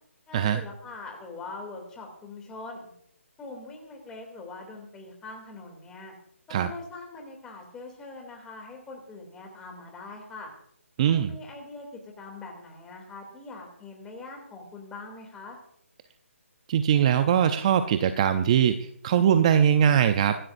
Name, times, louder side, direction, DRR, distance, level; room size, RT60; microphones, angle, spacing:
voice 1, 0.3-2.9 3.4-6.1 6.5-10.5 11.1-15.6, left 3 dB, 10° left, 2 dB, 2.8 m, -42 dB
voice 2, 11.0-11.3 16.7-20.4, right 9 dB, 25° right, 10 dB, 0.6 m, -21 dB
25.0 x 12.0 x 2.6 m, 0.71 s
hypercardioid pair, 160°, 8 cm